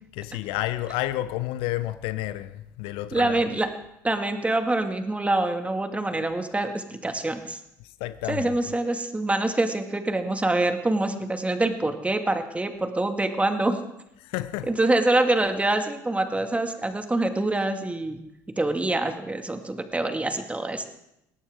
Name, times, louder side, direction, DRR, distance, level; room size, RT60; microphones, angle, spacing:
voice 1, 0.1-3.5 7.8-8.5 14.2-14.7, left 15 dB, 65° left, 0.7 m, -31 dB
voice 2, 3.1-3.7 4.0-7.6 8.3-13.8 14.7-18.2 18.6-20.8, right 2 dB, 15° right, 2.1 m, -25 dB
21.5 x 17.5 x 3.7 m
hypercardioid pair, 60°, 10 cm